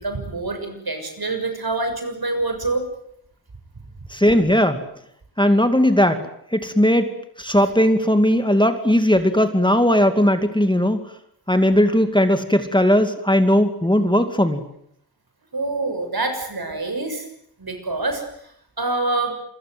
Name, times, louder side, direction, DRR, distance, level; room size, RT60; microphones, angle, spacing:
voice 1, 0.0-2.8 15.5-17.3 17.6-18.2 18.8-19.3, right 2 dB, 60° right, 6 dB, 6.6 m, -25 dB
voice 2, 4.1-4.8 5.4-6.2 6.5-7.1 7.4-11.0 11.5-14.6, equal, 10° left, 8 dB, 2.4 m, -17 dB
27.5 x 24.0 x 8.0 m, 0.71 s
wide cardioid pair, 80°, 41 cm